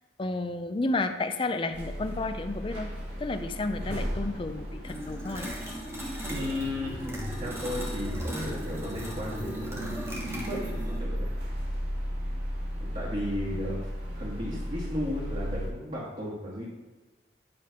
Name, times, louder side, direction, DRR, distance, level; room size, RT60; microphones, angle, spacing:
voice 1, 0.2-2.9 3.2-5.5, left 2 dB, 30° left, 8 dB, 0.5 m, -31 dB
sound 1, 1.7-15.7, equal, 70° right, 2.0 m, -36 dB
sound 2, 4.8-11.0, right 1 dB, 15° right, 1.3 m, -37 dB
voice 2, 6.3-9.9 10.3-10.7 11.0-11.3 12.8-13.8 14.1-16.6, left 1 dB, 35° right, -7 dB, 1.4 m, -35 dB
9.6 x 3.3 x 5.7 m, 1.3 s
head